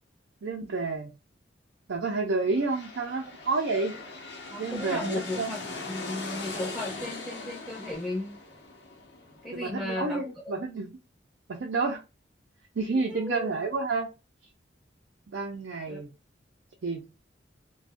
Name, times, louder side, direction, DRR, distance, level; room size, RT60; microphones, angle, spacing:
voice 1, 0.4-1.1 1.9-4.0 4.6-5.6 9.5-10.9 11.5-12.0 12.8-14.1 15.3-16.1 16.8-17.0, right 3 dB, 80° right, 0.5 m, -30 dB
sound 1, 2.3-10.0, left 3 dB, 70° left, 0.8 m, -41 dB
voice 2, 4.5-8.3 9.4-10.5 13.1-13.5 15.9-16.0, left 2 dB, ahead, 0.6 m, -35 dB
2.5 x 2.2 x 3.4 m
head